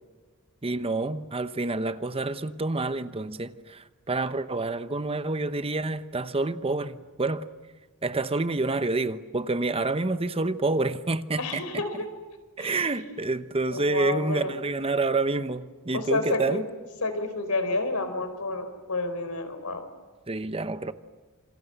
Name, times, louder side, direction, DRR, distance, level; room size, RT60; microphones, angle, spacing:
voice 1, 0.6-7.5 8.0-11.6 12.6-16.7 20.3-20.9, right 3 dB, 25° right, 0.9 m, -28 dB
voice 2, 11.4-12.1 12.6-13.1 13.7-14.5 15.9-16.6 17.0-19.9, left 2 dB, 85° left, 4.5 m, -30 dB
27.5 x 26.5 x 8.0 m
head